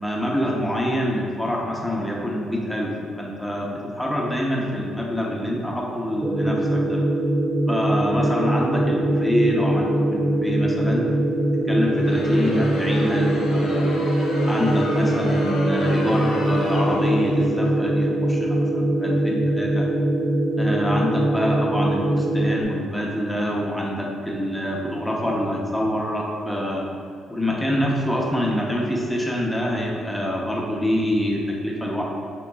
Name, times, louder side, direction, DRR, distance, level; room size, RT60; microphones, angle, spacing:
voice 1, 0.0-7.0 7.7-11.1 11.7-13.9 14.5-19.9 20.6-26.9 27.3-32.0, equal, 10° left, -2 dB, 0.8 m, -25 dB
sound 1, 6.2-22.6, right 1 dB, 20° right, 0.3 m, -22 dB
Crowd, 11.8-17.6, left 1 dB, 90° left, 0.8 m, -30 dB
6.7 x 2.9 x 2.4 m, 2.4 s
cardioid pair, 90°, 0 cm